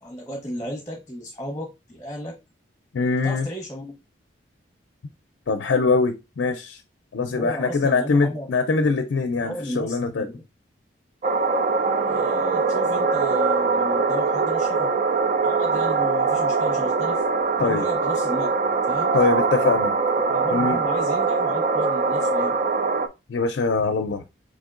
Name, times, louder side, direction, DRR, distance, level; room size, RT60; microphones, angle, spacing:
voice 1, 0.0-2.4 3.2-3.9 7.4-8.5 9.4-10.4 12.1-14.9 15.4-17.2 17.6-18.5 18.9-19.2 20.3-22.6, equal, 15° left, 0.9 m, -34 dB
voice 2, 2.9-3.5 5.5-6.8 7.1-10.3 17.6-17.9 19.1-19.9 20.5-20.8 23.3-24.2, left 4 dB, 75° left, 0.4 m, -22 dB
sound 1, 11.2-23.1, right 4 dB, 40° right, 0.3 m, -22 dB
5.0 x 3.6 x 2.4 m
head